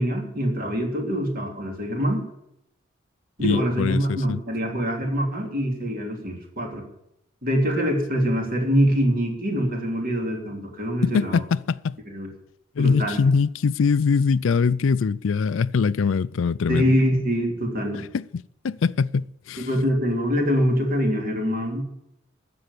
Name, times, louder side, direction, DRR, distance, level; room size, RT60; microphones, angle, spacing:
voice 1, 0.0-2.2 3.4-6.8 7.4-11.4 12.1-12.3 12.8-13.2 16.7-18.0 19.6-21.8, equal, 45° right, 3.3 m, -24 dB
voice 2, 3.4-4.4 11.0-12.0 12.8-16.9 18.1-18.2 18.6-19.7, left 5 dB, 70° left, 0.4 m, -22 dB
13.0 x 7.8 x 9.8 m
head